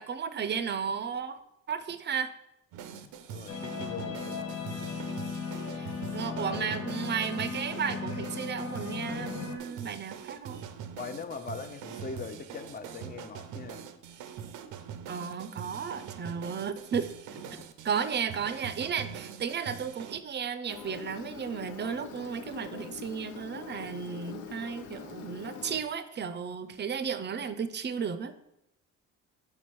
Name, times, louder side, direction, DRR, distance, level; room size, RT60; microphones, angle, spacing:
voice 1, 0.0-1.4 1.7-2.3 5.7-10.6 15.1-17.1 17.8-28.3, right 7 dB, 35° right, 12 dB, 0.5 m, -34 dB
sound 1, 2.7-20.2, right 8 dB, 85° right, 0.5 m, -43 dB
voice 2, 2.8-5.0 6.3-6.7 11.0-13.9 16.4-16.5 17.5-17.7 18.8-18.9 25.5-25.8, left 5 dB, 30° left, 10 dB, 0.6 m, -42 dB
sound 2, 3.5-9.6, left 5 dB, 65° left, 1.0 m, -37 dB
Engine, 20.7-25.8, left 7 dB, 85° left, 0.6 m, -44 dB
4.9 x 4.4 x 4.6 m, 0.81 s
cardioid pair, 90°, 30 cm